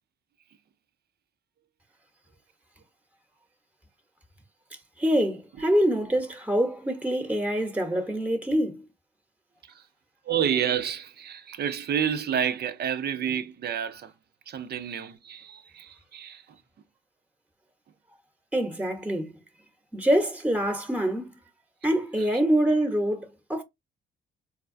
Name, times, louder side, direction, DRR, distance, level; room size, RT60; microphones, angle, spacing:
voice 1, 5.0-8.8 18.5-19.3 19.9-21.3 21.8-23.6, equal, 5° right, 0.9 m, -25 dB
voice 2, 10.2-14.1 14.5-16.6 22.2-22.3, right 8 dB, 55° right, 0.6 m, -29 dB
4.0 x 2.2 x 2.6 m
cardioid pair, 90°, 20 cm